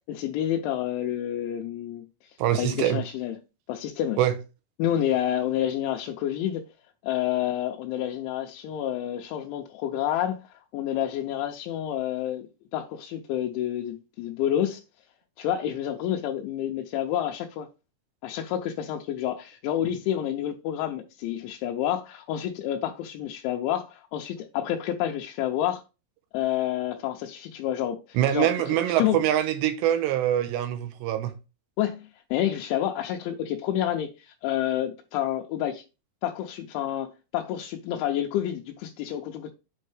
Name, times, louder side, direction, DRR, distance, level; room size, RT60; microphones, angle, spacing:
voice 1, 0.1-2.1 2.5-3.4 3.7-4.2 4.8-6.6 7.0-12.5 12.7-14.8 15.4-17.7 18.2-25.8 26.3-29.2 31.8-35.8 36.2-39.5, left 11 dB, 90° left, 3.1 m, -29 dB
voice 2, 2.4-3.0 4.2-4.3 28.2-31.3, right 11 dB, 80° right, 2.8 m, -24 dB
7.6 x 5.4 x 3.3 m
omnidirectional pair, 5.3 m